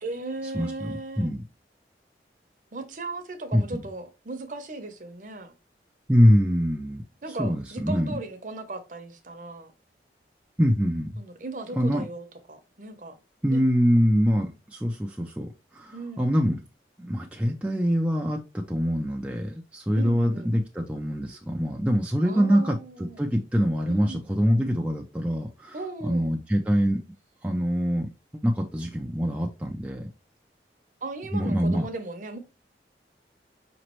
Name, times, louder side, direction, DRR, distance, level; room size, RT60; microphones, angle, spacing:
voice 1, 0.0-1.3 2.7-5.5 7.2-9.7 11.2-13.1 13.5-13.6 15.9-16.3 19.9-20.5 22.2-23.3 23.9-24.3 25.7-26.4 31.0-32.4, right 2 dB, 45° right, 0.7 m, -37 dB
voice 2, 0.5-1.4 3.5-3.6 6.1-7.0 7.4-8.1 10.6-11.1 11.8-12.1 13.4-16.6 17.0-22.8 23.2-25.8 26.0-27.0 27.4-28.1 28.4-30.1 31.3-31.9, equal, 5° right, 0.3 m, -24 dB
5.0 x 3.0 x 3.0 m
head